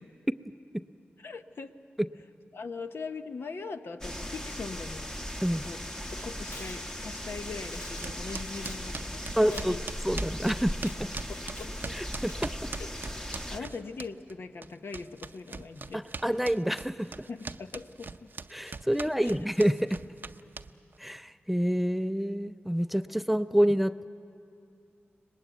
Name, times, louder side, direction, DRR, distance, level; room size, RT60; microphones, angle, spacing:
voice 1, 1.2-1.7 2.5-5.1 5.6-5.8 6.1-9.8 11.3-11.9 12.8-12.9 13.3-16.1 17.3-18.3 19.2-19.4, left 4 dB, 70° left, 7 dB, 0.9 m, -41 dB
sound 1, 4.0-13.6, equal, 15° left, 1.1 m, -38 dB
Tearing, 5.6-12.4, left 2 dB, 85° left, 2.3 m, -52 dB
sound 2, 8.0-14.3 14.6-21.0, right 4 dB, 55° right, 0.6 m, -41 dB
voice 2, 9.4-9.8 10.0-11.1 11.9-12.7 15.9-17.3 18.5-20.0 21.0-24.1, equal, 5° right, 13 dB, 0.5 m, -28 dB
23.5 x 20.0 x 9.2 m, 2.6 s
cardioid pair, 65°, 4 cm